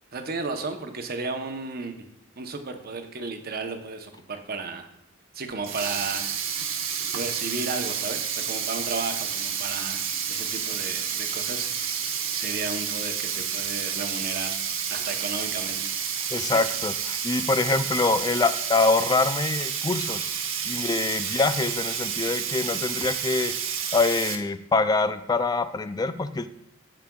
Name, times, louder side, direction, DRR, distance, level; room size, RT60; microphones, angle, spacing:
voice 1, 0.1-2.1 2.4-4.9 5.3-6.3 7.1-10.0 10.3-14.6 14.9-15.9 21.3-21.4, right 3 dB, 50° right, 5 dB, 0.9 m, -34 dB
Sink (filling or washing), 5.5-24.4, right 7 dB, 75° right, 0.9 m, -30 dB
voice 2, 16.3-20.3 20.6-23.5 23.9-26.5, left 3 dB, 20° left, 11 dB, 0.3 m, -25 dB
15.0 x 5.0 x 2.3 m, 0.84 s
head